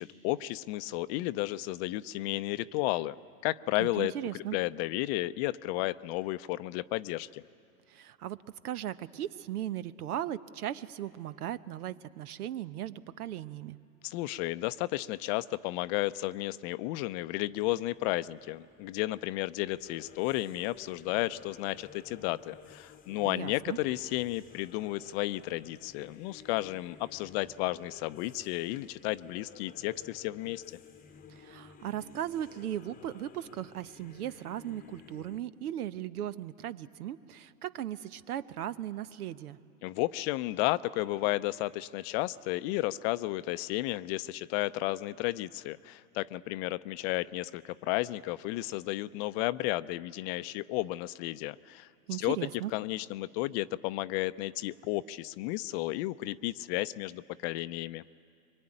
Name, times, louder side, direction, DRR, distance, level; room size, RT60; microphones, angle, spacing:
voice 1, 0.0-3.2 3.4-4.1 4.5-7.4 14.0-30.8 39.8-51.9 52.2-52.4 52.7-58.0, left 18 dB, 45° left, 15 dB, 0.6 m, -33 dB
voice 2, 3.8-4.6 7.9-8.4 8.6-13.8 23.2-23.8 31.3-39.6 52.1-52.7, right 11 dB, 75° right, 14 dB, 1.0 m, -37 dB
sound 1, 17.3-35.4, left 6 dB, 20° left, 1.0 m, -54 dB
24.5 x 23.0 x 9.9 m, 2.4 s
hypercardioid pair, 110°, 45 cm